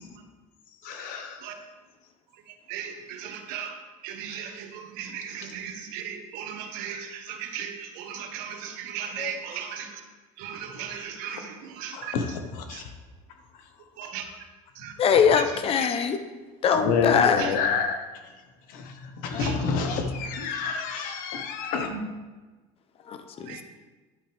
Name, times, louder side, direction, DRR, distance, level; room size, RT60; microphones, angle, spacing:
voice 1, 0.8-1.4 11.9-12.2 12.7-12.8 16.7-18.0 18.7-18.9 19.2-21.9, left 5 dB, 65° left, 5 dB, 1.3 m, -28 dB
voice 2, 2.5-10.0 10.4-12.2 12.7-12.8 14.0-14.2 14.7-14.9 15.3-15.9 17.4-17.6 19.4-19.6 21.9-22.0 23.4-23.6, right 8 dB, 75° right, 5 dB, 1.3 m, -37 dB
voice 3, 15.0-16.2 16.6-17.5 19.3-19.5 23.1-23.6, left 7 dB, 40° left, 9 dB, 0.9 m, -22 dB
11.0 x 8.7 x 3.5 m, 1.3 s
cardioid pair, 125°, 15 cm